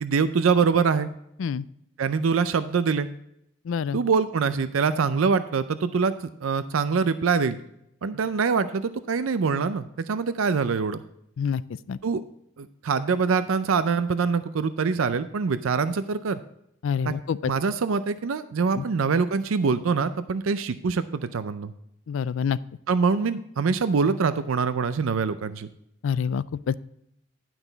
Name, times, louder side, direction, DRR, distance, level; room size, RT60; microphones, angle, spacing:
voice 1, 0.0-1.1 2.0-3.1 3.9-7.6 8.0-11.0 12.0-12.2 12.6-16.4 17.1-17.2 17.4-21.7 22.9-25.7, right 5 dB, 85° right, 12 dB, 0.5 m, -24 dB
voice 2, 3.7-4.0 11.4-11.6 11.9-12.0 16.8-17.5 18.8-18.9 22.1-22.6 26.0-26.8, left 7 dB, 75° left, 18 dB, 0.4 m, -27 dB
11.0 x 6.0 x 3.9 m, 0.77 s
head